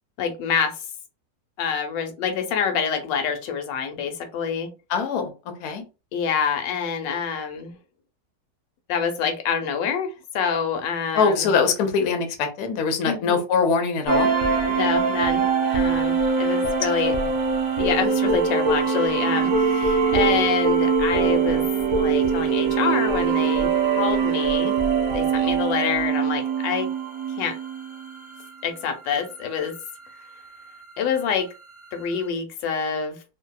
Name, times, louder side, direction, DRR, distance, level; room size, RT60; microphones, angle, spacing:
voice 1, 0.2-0.8 1.6-4.7 6.1-7.8 8.9-11.5 13.0-13.4 14.7-15.5 15.7-17.1 17.8-21.6 21.9-24.8 25.1-26.9 27.4-27.6 28.6-29.7 31.0-31.5 31.9-33.2, left 7 dB, 90° left, 6 dB, 1.3 m, -26 dB
voice 2, 4.9-5.3 5.6-5.8 11.1-14.3 17.0-17.1, left 5 dB, 70° left, 5 dB, 1.1 m, -22 dB
sound 1, 14.1-28.2, right 5 dB, 30° right, 0.9 m, -22 dB
2.7 x 2.6 x 2.2 m, 0.30 s
omnidirectional pair, 1.9 m